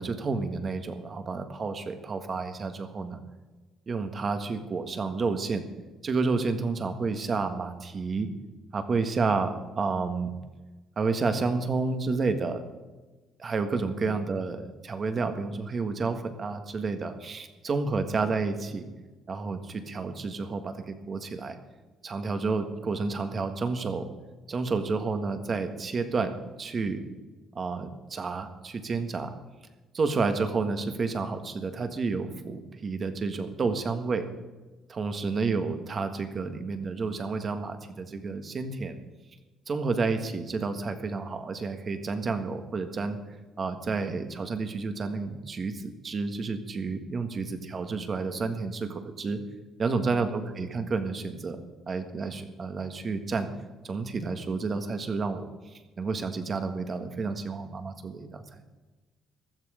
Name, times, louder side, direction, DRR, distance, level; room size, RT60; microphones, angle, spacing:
voice 1, 0.0-3.2 3.9-5.6 6.0-8.3 8.7-10.3 11.0-12.6 13.4-14.6 14.8-18.9 19.3-21.6 22.0-24.1 24.5-26.3 26.6-27.0 27.5-29.3 29.9-34.2 34.9-39.0 39.7-43.2 43.6-49.4 49.8-51.6 51.9-53.5 53.8-55.5 56.0-58.4, right 4 dB, 35° right, 7 dB, 1.6 m, -30 dB
15.5 x 13.0 x 5.1 m, 1.2 s
cardioid pair, 125°, 0 cm